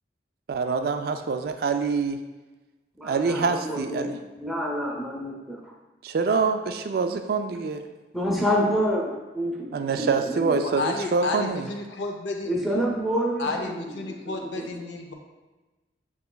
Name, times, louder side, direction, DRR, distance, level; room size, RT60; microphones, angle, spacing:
voice 1, 0.5-2.2 3.0-4.2 6.0-7.8 9.7-11.7, right 4 dB, 55° right, 7 dB, 0.3 m, -25 dB
voice 2, 3.0-5.6 8.1-9.7 10.0-10.5 12.4-14.7, equal, ahead, -4 dB, 0.6 m, -28 dB
voice 3, 10.6-12.5 13.4-15.1, left 3 dB, 75° left, 3 dB, 0.5 m, -31 dB
6.7 x 3.0 x 2.2 m, 1.2 s
head